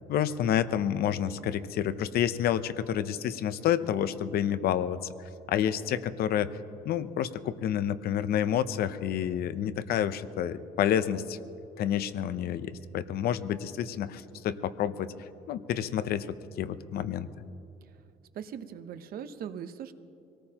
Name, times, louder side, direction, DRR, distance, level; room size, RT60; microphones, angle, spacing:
voice 1, 0.1-5.0 5.5-6.5 6.8-11.4 11.8-15.1 15.5-16.3 16.6-17.3, left 10 dB, 65° left, 13 dB, 0.7 m, -29 dB
voice 2, 18.3-19.9, right 8 dB, 60° right, 10 dB, 0.9 m, -40 dB
24.5 x 18.5 x 2.9 m, 2.7 s
cardioid pair, 110°, 17 cm